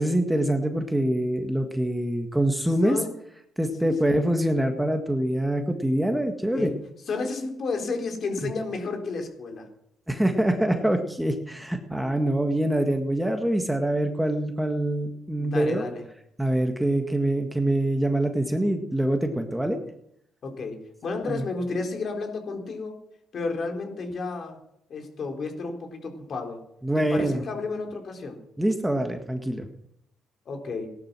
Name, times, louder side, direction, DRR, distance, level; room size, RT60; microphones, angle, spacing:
voice 1, 0.0-3.0 3.6-6.7 8.4-8.5 10.1-15.9 16.4-19.8 21.3-21.5 26.8-27.4 28.6-29.7, right 1 dB, 5° right, 5 dB, 1.8 m, -25 dB
voice 2, 2.8-3.1 3.8-4.2 6.5-6.7 7.1-9.7 15.4-16.0 20.4-20.8 21.0-23.0 23.3-24.6 24.9-26.6 27.0-28.4 30.5-30.9, left 3 dB, 55° left, 3 dB, 4.2 m, -32 dB
17.5 x 12.0 x 6.3 m, 0.75 s
cardioid pair, 90°, 0 cm